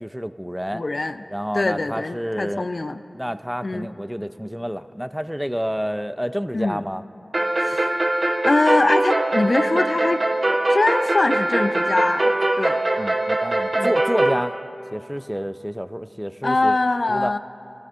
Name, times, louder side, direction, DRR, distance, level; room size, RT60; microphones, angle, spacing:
voice 1, 0.0-0.8 1.3-2.7 3.1-7.0 13.0-14.5 14.9-16.8 17.1-17.3, equal, 5° right, 11 dB, 0.4 m, -29 dB
voice 2, 0.7-1.2 1.5-3.0 3.6-3.9 6.5-6.8 7.6-7.9 8.4-10.2 10.7-12.3 12.6-12.8 13.7-14.0 16.4-17.4, left 2 dB, 60° left, 9 dB, 0.5 m, -22 dB
sound 1, 7.3-14.4, right 1 dB, 60° right, 0.8 m, -22 dB
24.0 x 16.5 x 2.5 m, 2.8 s
wide cardioid pair, 50°, 0 cm